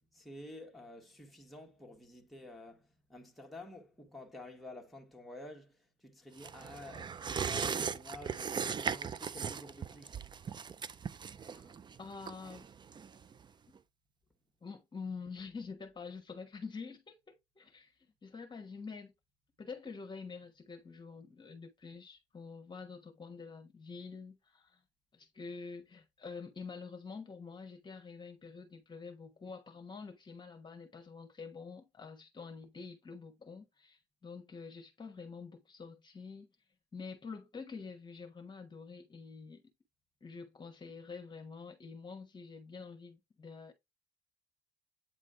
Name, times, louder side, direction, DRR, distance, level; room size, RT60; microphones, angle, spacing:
voice 1, 0.1-10.2, left 1 dB, ahead, 1.4 m, -50 dB
sound 1, 6.4-13.4 13.8-13.9, right 6 dB, 25° right, 0.4 m, -38 dB
voice 2, 11.4-11.7 12.0-12.7 14.6-17.9 18.2-19.1 19.6-24.8 25.1-36.5 36.9-39.6 40.2-43.7, left 5 dB, 25° left, 1.2 m, -47 dB
8.7 x 3.0 x 3.8 m
cardioid pair, 110°, 17 cm